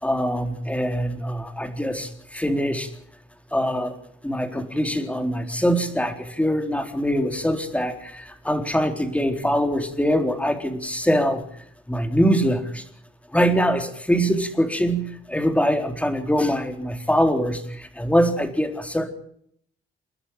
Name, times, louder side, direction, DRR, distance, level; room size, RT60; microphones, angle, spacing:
voice 1, 0.0-2.9 3.5-3.9 4.2-11.4 11.9-12.8 13.3-19.1, equal, 5° left, 6 dB, 3.9 m, -23 dB
29.5 x 11.0 x 8.6 m, 0.66 s
cardioid pair, 90°, 20 cm